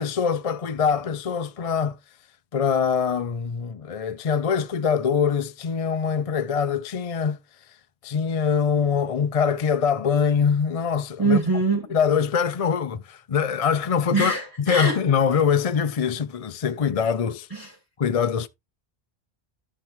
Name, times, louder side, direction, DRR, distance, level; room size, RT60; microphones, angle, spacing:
voice 1, 0.0-2.0 2.5-7.4 8.0-11.4 11.9-14.3 14.7-17.5 18.0-18.5, left 6 dB, 45° left, 0.6 m, -23 dB
voice 2, 11.2-12.0 14.1-15.0 17.5-17.7, right 3 dB, 20° right, 1.8 m, -23 dB
12.0 x 6.4 x 3.2 m
omnidirectional pair, 1.0 m